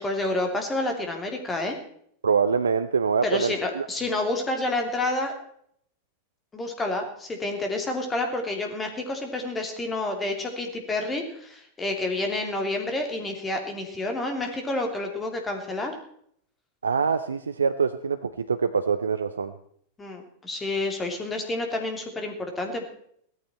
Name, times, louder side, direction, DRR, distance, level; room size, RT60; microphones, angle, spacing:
voice 1, 0.0-1.8 3.2-5.3 6.5-15.9 20.0-22.8, left 2 dB, 15° left, 4 dB, 3.2 m, -29 dB
voice 2, 2.2-3.9 16.8-19.5, right 5 dB, 75° right, 11 dB, 0.7 m, -24 dB
16.5 x 14.0 x 4.5 m, 0.65 s
figure-of-eight pair, 90°, 0 cm